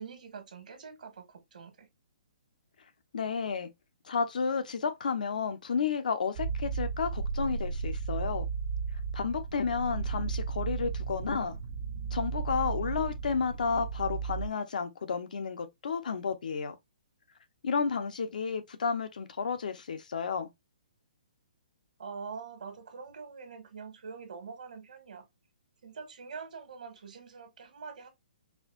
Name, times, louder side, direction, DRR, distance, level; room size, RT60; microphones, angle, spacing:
voice 1, 0.0-1.9 22.0-25.2 25.8-28.1, right 5 dB, 70° right, 1.4 m, -44 dB
voice 2, 3.1-3.7 4.0-8.5 9.1-11.6 12.1-16.8 17.6-20.5, left 5 dB, 70° left, 0.8 m, -32 dB
sound 1, 6.4-14.5, right 5 dB, 45° right, 0.8 m, -34 dB
4.6 x 2.7 x 2.4 m
hypercardioid pair, 170°, 5 cm